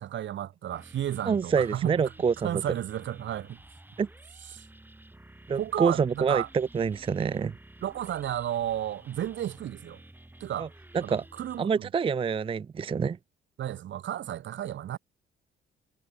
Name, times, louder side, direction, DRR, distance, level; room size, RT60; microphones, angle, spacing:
voice 1, 0.0-2.1 2.4-3.6 4.5-4.6 5.5-6.5 7.8-10.0 10.4-10.7 11.0-11.9 13.6-15.0, right 11 dB, 70° right, 2.2 m, -33 dB
sound 1, 0.7-11.6, right 1 dB, 10° right, 5.1 m, -52 dB
voice 2, 1.3-2.6 4.0-4.1 5.5-7.6 10.6-10.7 10.9-11.2 11.6-13.2, right 6 dB, 25° right, 0.5 m, -27 dB
cardioid pair, 90°, 20 cm